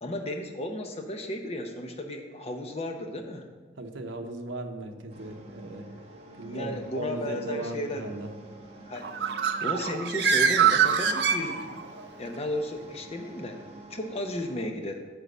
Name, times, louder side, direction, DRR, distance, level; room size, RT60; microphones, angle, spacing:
voice 1, 0.0-3.5 6.4-8.1 8.8-11.8 12.2-13.6 13.9-15.0, left 1 dB, 30° left, 4 dB, 0.8 m, -34 dB
voice 2, 3.8-5.8 6.4-8.3, right 1 dB, 80° right, 4 dB, 0.9 m, -37 dB
sound 1, 5.1-14.6, right 1 dB, 30° right, 1.2 m, -48 dB
Bird, 9.0-12.0, right 7 dB, 55° right, 0.5 m, -24 dB
9.2 x 3.9 x 6.8 m, 1.4 s
head